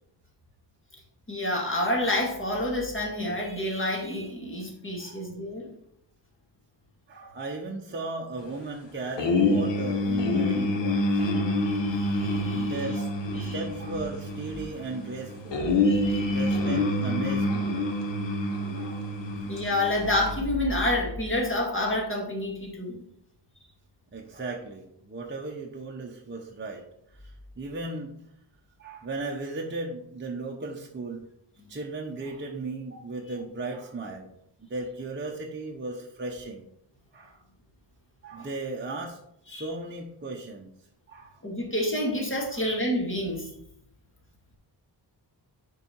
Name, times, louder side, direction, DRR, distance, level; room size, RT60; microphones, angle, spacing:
voice 1, 1.3-5.7 11.3-13.0 13.3-13.6 15.8-16.4 19.5-23.0 31.6-31.7 38.4-38.5 39.5-39.7 41.4-43.5, left 1 dB, 30° left, -2 dB, 2.2 m, -29 dB
voice 2, 7.1-11.3 12.5-13.1 13.3-15.6 16.3-17.8 18.7-19.1 24.1-26.8 27.2-28.1 28.8-31.2 31.7-34.3 34.6-36.6 37.1-37.4 38.2-39.2 39.5-40.7 41.1-41.4 42.5-42.7, right 3 dB, 25° right, -1 dB, 0.8 m, -36 dB
sound 1, 9.2-20.4, left 2 dB, 90° left, 1.1 m, -27 dB
6.8 x 4.7 x 4.5 m, 0.74 s
wide cardioid pair, 130°, 42 cm